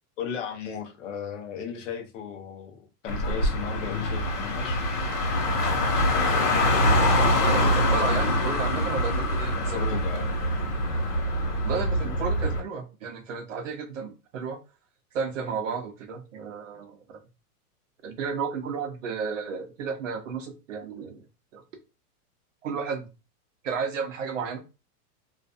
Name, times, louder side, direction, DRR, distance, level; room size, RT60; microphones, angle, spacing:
voice 1, 0.2-4.8 9.7-10.3, left 7 dB, 55° left, 0.7 m, -36 dB
Car, 3.1-12.6, left 1 dB, 80° left, 1.3 m, -24 dB
voice 2, 7.2-10.0 11.6-14.6 15.1-17.2 18.0-21.2 21.5-21.6 22.6-23.1 23.6-24.6, right 5 dB, 55° right, 0.7 m, -33 dB
2.5 x 2.4 x 2.3 m
supercardioid pair, 175°, 46 cm